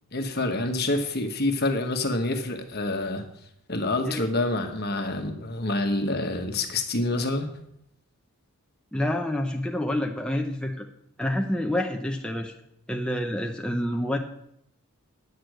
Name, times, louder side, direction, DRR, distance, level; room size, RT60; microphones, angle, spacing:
voice 1, 0.1-3.2 3.7-7.5, left 2 dB, 45° left, 6 dB, 1.3 m, -27 dB
voice 2, 8.9-10.9 11.2-12.5 12.9-14.2, left 1 dB, 5° left, 1 dB, 0.6 m, -28 dB
9.4 x 6.8 x 7.9 m, 0.75 s
head